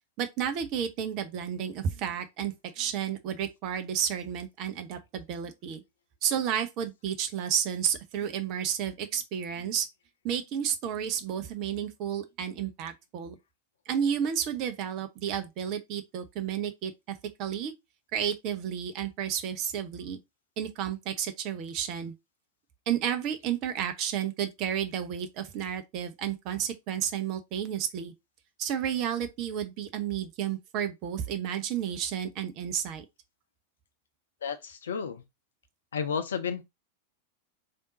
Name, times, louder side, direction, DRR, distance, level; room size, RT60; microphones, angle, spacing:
voice 1, 0.2-5.8 6.2-9.9 10.2-13.4 13.9-17.7 18.1-20.2 20.6-22.1 22.9-28.1 28.6-33.0, right 9 dB, 40° right, 0.7 m, -31 dB
voice 2, 34.4-35.2 35.9-36.6, left 6 dB, 65° left, 0.6 m, -32 dB
3.5 x 2.6 x 4.0 m
figure-of-eight pair, 90°, 0 cm